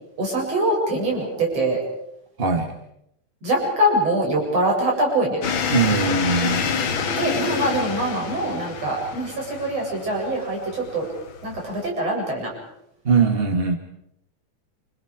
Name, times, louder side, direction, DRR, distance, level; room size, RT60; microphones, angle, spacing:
voice 1, 0.2-1.8 3.4-5.4 7.1-11.1 11.4-12.5, right 1 dB, 50° right, -1 dB, 8.9 m, -23 dB
voice 2, 2.4-2.7 5.7-6.9 13.0-13.7, right 5 dB, 25° right, 3 dB, 1.3 m, -21 dB
sound 1, 5.4-11.9, left 6 dB, 50° left, 1.8 m, -28 dB
28.5 x 28.5 x 5.0 m, 0.77 s
omnidirectional pair, 3.8 m